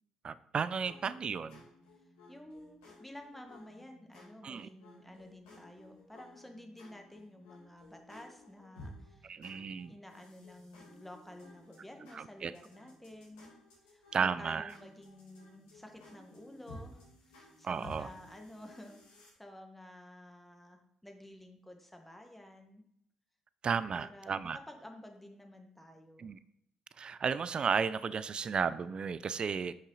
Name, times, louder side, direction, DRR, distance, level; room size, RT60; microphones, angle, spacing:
voice 1, 0.2-1.7 4.4-4.7 9.2-9.9 12.1-12.5 14.1-14.7 17.6-18.1 23.6-24.6 26.2-26.4 27.0-29.7, right 6 dB, 45° right, 16 dB, 0.4 m, -34 dB
sound 1, 0.8-19.3, left 1 dB, 90° left, 2.4 m, -56 dB
voice 2, 2.3-9.4 9.9-13.5 13.9-17.0 17.3-22.8 23.7-26.3, left 1 dB, 5° left, 4 dB, 1.3 m, -52 dB
5.7 x 5.5 x 3.9 m, 0.74 s
hypercardioid pair, 55°, 2 cm